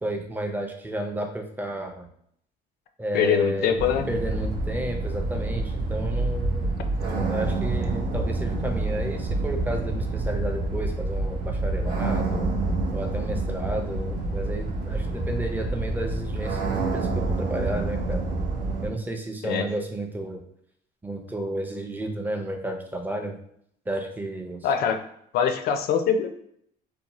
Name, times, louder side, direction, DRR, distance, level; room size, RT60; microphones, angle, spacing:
voice 1, 0.0-2.1 3.0-3.7 4.1-6.7 7.0-12.5 12.9-18.2 18.8-20.4 21.0-23.4 23.9-24.7, right 1 dB, 10° right, 3 dB, 0.5 m, -32 dB
voice 2, 3.1-4.1 19.4-19.7 24.6-25.0 25.3-26.3, left 7 dB, 70° left, 7 dB, 0.4 m, -23 dB
sound 1, 3.8-18.9, right 2 dB, 90° right, 0.8 m, -27 dB
2.7 x 2.2 x 2.9 m, 0.68 s
cardioid pair, 110°, 17 cm